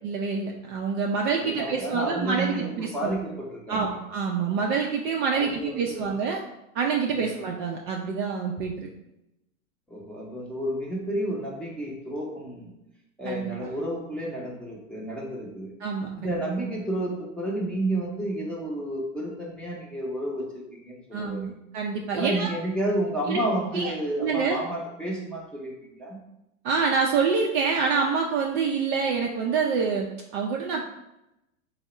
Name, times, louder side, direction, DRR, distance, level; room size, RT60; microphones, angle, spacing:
voice 1, 0.0-3.2 3.7-6.4 6.7-8.9 13.2-13.7 15.8-16.3 21.1-22.5 23.3-23.4 23.7-23.9 24.2-24.6 26.6-30.1 30.3-30.8, right 5 dB, 40° right, 0 dB, 0.4 m, -26 dB
voice 2, 1.3-4.0 5.3-6.1 7.1-7.4 9.9-12.7 13.2-15.7 16.1-21.6 22.2-26.2, right 1 dB, 5° left, -4 dB, 0.7 m, -31 dB
3.5 x 2.1 x 4.2 m, 0.88 s
hypercardioid pair, 110°, 41 cm